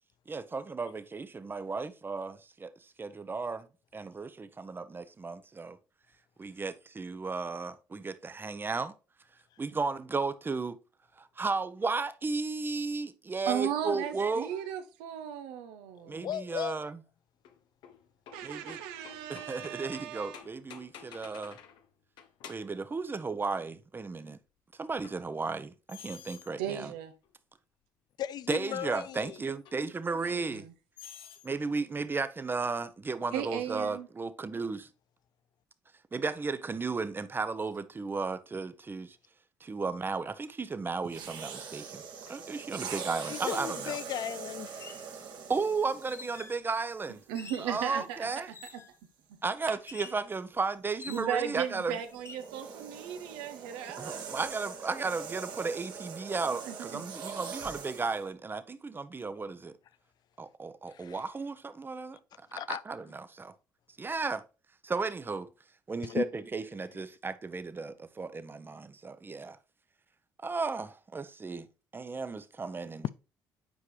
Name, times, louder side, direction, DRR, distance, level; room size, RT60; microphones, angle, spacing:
voice 1, 0.3-2.7 3.0-3.7 3.9-5.8 6.4-8.9 9.6-10.8 11.2-14.5 16.1-17.0 18.4-18.8 19.3-21.6 22.5-24.4 24.8-26.9 28.5-30.6 31.4-34.9 36.1-39.2 39.6-44.0 45.5-47.2 47.6-48.5 49.4-52.0 54.0-59.7 60.4-62.2 62.5-63.5 64.0-64.4 64.8-65.5 65.9-69.6 70.4-71.7 71.9-73.1, right 4 dB, 25° right, 0.7 m, -34 dB
voice 2, 13.5-16.3 18.3-20.4 26.6-27.1 30.2-30.7 33.3-34.1 47.3-48.4 48.7-48.8 49.3-49.4 51.1-54.2 56.6-57.1, right 9 dB, 85° right, 0.8 m, -36 dB
voice 3, 16.0-16.8 20.9-21.0 28.2-29.4 43.3-45.0 60.9-61.2 62.5-62.8 66.0-66.2, left 10 dB, 55° left, 0.3 m, -36 dB
sound 1, 17.4-21.9 22.2-22.8 25.0-25.2 25.9-26.5 27.3-27.4 29.7-29.8 31.0-31.5, left 8 dB, 70° left, 0.8 m, -50 dB
sound 2, 41.0-46.6 47.4-47.6 51.6-58.2, right 6 dB, 65° right, 1.5 m, -42 dB
sound 3, 43.7-43.8 44.6-45.1 46.1-46.6 47.3-47.8 48.5-49.0 49.9-50.2 51.0-51.6 52.1-52.5, left 5 dB, 35° left, 0.7 m, -48 dB
8.4 x 4.7 x 3.1 m
supercardioid pair, 70°, 8 cm